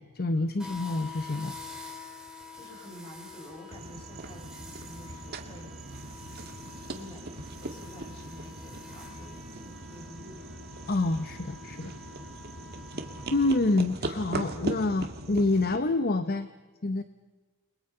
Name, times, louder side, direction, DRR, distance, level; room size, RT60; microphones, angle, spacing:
voice 1, 0.0-1.5 10.9-11.9 13.3-16.5 16.8-17.0, left 2 dB, 45° left, 10 dB, 0.9 m, -27 dB
sound 1, 0.6-13.6, left 4 dB, 5° right, 2.9 m, -47 dB
voice 2, 2.5-5.7 6.4-7.3 7.6-10.5, equal, 25° left, 0 dB, 6.9 m, -49 dB
sound 2, 3.7-15.8, right 2 dB, 50° right, 1.9 m, -39 dB
29.5 x 22.0 x 5.6 m, 1.3 s
head